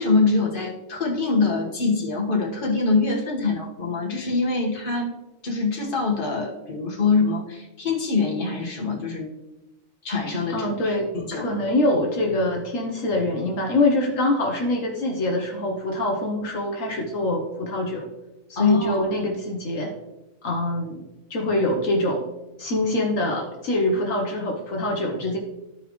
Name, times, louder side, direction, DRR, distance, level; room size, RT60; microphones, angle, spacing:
voice 1, 0.0-5.1 5.4-9.3 10.0-11.5 18.5-19.0, left 4 dB, 40° left, -2 dB, 1.7 m, -24 dB
voice 2, 10.5-18.1 18.5-19.9 20.4-22.3 22.6-25.4, left 1 dB, 75° left, 0 dB, 1.4 m, -24 dB
14.0 x 5.0 x 3.1 m, 1.0 s
omnidirectional pair, 1.4 m